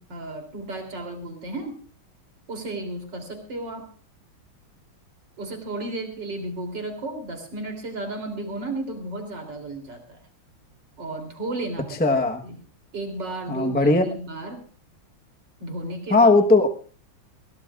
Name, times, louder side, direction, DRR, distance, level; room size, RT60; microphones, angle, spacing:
voice 1, 0.0-1.8 2.5-3.9 5.4-10.2 11.0-12.0 12.4-12.6 12.9-14.6 15.6-16.3, right 2 dB, 60° right, 4 dB, 3.8 m, -33 dB
voice 2, 12.0-12.4 13.5-14.1 16.1-16.7, left 2 dB, 10° left, 4 dB, 0.6 m, -18 dB
22.5 x 17.0 x 2.4 m, 0.39 s
omnidirectional pair, 2.2 m